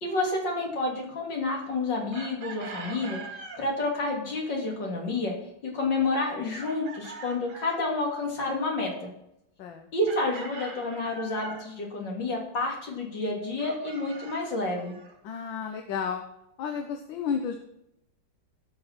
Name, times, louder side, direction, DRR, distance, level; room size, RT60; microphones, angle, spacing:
voice 1, 0.0-5.3 5.6-9.1 9.9-14.9, left 2 dB, 65° left, 0 dB, 3.5 m, -29 dB
Chicken rooster, 2.1-3.6 6.6-8.0 10.1-11.7 13.6-15.1, right 3 dB, 85° right, 2.9 m, -42 dB
voice 2, 15.2-16.2 16.6-17.6, left 6 dB, 80° left, 5 dB, 1.7 m, -32 dB
16.5 x 6.0 x 5.9 m, 0.80 s
omnidirectional pair, 2.1 m